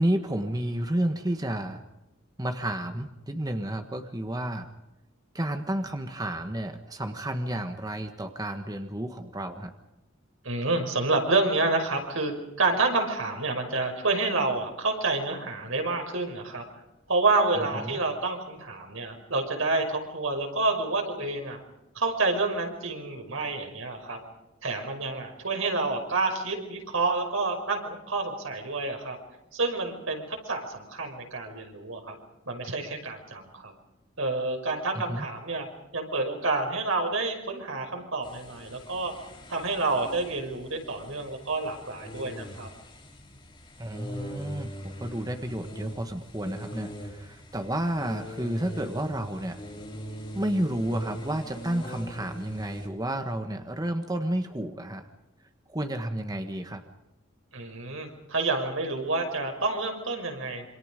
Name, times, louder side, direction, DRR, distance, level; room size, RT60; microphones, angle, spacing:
voice 1, 0.0-1.8 2.4-4.7 5.3-9.7 17.8-18.0 35.1-35.2 43.8-44.7 45.0-49.6 50.3-55.1 55.7-56.8, right 1 dB, 20° right, 6 dB, 1.5 m, -31 dB
voice 2, 10.4-16.6 17.1-21.6 21.9-24.2 24.6-29.2 29.5-32.1 32.5-33.7 34.2-35.7 35.9-39.1 39.5-42.7 57.5-60.7, right 3 dB, 85° right, 4 dB, 5.7 m, -28 dB
sound 1, 38.2-52.9, equal, 25° left, 3.9 m, -42 dB
27.5 x 26.0 x 5.2 m, 0.95 s
head